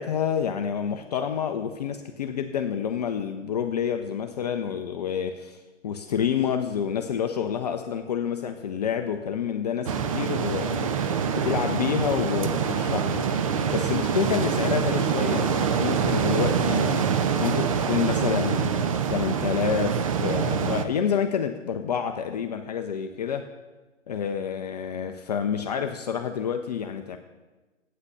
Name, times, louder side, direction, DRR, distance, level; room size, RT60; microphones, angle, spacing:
voice 1, 0.0-17.1 17.4-23.5 24.1-27.2, left 8 dB, 35° left, 6 dB, 0.6 m, -28 dB
sound 1, 9.9-20.9, right 6 dB, 30° right, 0.5 m, -25 dB
9.5 x 8.5 x 6.5 m, 1.2 s
figure-of-eight pair, 120°, 37 cm